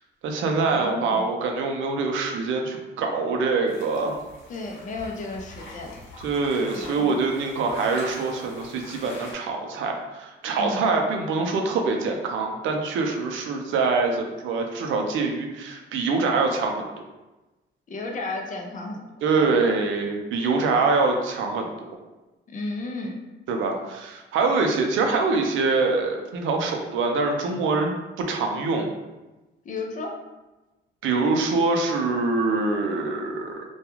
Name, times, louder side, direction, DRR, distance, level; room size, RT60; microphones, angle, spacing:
voice 1, 0.2-4.2 6.2-16.8 19.2-22.0 23.5-27.9 28.2-28.9 31.0-33.6, right 3 dB, 80° right, 3 dB, 0.5 m, -24 dB
voice 2, 0.8-1.3 4.5-6.0 6.7-7.1 10.6-11.0 17.9-19.1 19.6-19.8 22.5-23.2 29.6-30.1, left 2 dB, 40° left, 2 dB, 0.5 m, -33 dB
sound 1, 3.7-9.3, left 2 dB, 80° left, 0.8 m, -44 dB
2.3 x 2.2 x 3.0 m, 1.1 s
cardioid pair, 90°, 20 cm